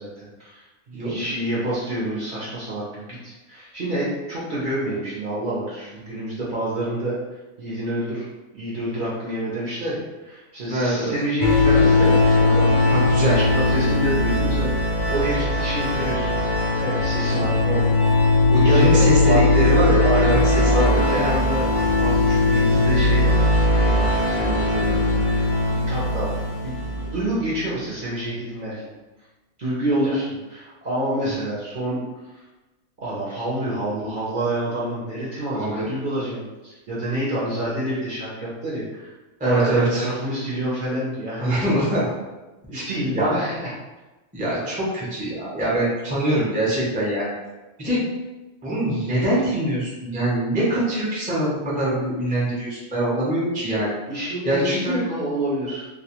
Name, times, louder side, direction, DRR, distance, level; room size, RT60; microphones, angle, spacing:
voice 1, 0.0-7.2 7.6-8.3 8.5-16.3 16.8-17.6 18.6-19.4 19.9-20.4 20.7-21.7 22.0-23.5 23.8-25.4 25.9-28.9 29.6-32.0 32.3-32.4 33.0-39.1 39.4-41.6 42.7-43.7 54.1-55.9, right 1 dB, 55° right, -7 dB, 0.6 m, -28 dB
voice 2, 10.7-11.1 12.9-13.4 17.7-17.8 18.5-21.3 31.2-31.3 35.5-35.9 39.4-40.1 41.4-42.1 42.7-42.8 43.1-43.4 44.3-47.3 47.8-48.0 48.6-53.9 54.4-55.0, right 1 dB, 15° right, -7 dB, 0.3 m, -23 dB
sound 1, 11.4-27.3, left 2 dB, 85° left, 0.4 m, -19 dB
2.3 x 2.2 x 2.8 m, 1.1 s
omnidirectional pair, 1.4 m